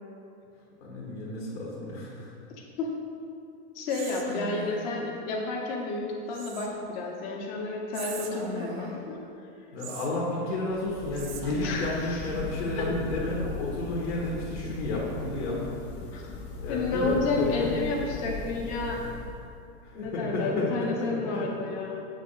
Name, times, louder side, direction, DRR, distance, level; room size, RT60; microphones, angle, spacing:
voice 1, 0.8-2.3 9.7-15.7 16.6-17.7 19.8-21.4, left 2 dB, 80° left, -4 dB, 1.3 m, -31 dB
voice 2, 3.7-9.2 11.6-12.3 16.1-16.3 16.7-19.0 19.9-22.0, left 3 dB, 50° left, -2 dB, 1.1 m, -31 dB
Whispering, 3.9-5.0 6.3-7.0 7.9-9.1 9.8-10.7 11.1-12.0, right 4 dB, 40° right, 0.5 m, -40 dB
sound 1, 10.5-19.7, left 4 dB, 35° left, 0.6 m, -38 dB
7.2 x 2.6 x 5.5 m, 2.7 s
supercardioid pair, 140°, 35 cm